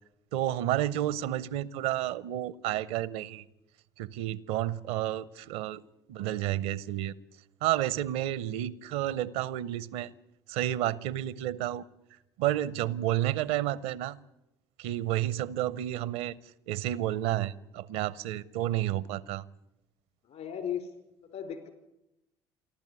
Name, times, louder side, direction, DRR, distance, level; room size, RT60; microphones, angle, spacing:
voice 1, 0.3-3.4 4.0-5.8 6.1-7.2 7.6-10.1 10.5-11.8 12.4-14.2 14.8-16.3 16.7-19.4, right 13 dB, 75° right, 0.6 m, -31 dB
voice 2, 20.2-20.9 21.2-21.7, left 8 dB, 60° left, 4.8 m, -36 dB
28.0 x 12.0 x 8.3 m
hypercardioid pair, 60°, 13 cm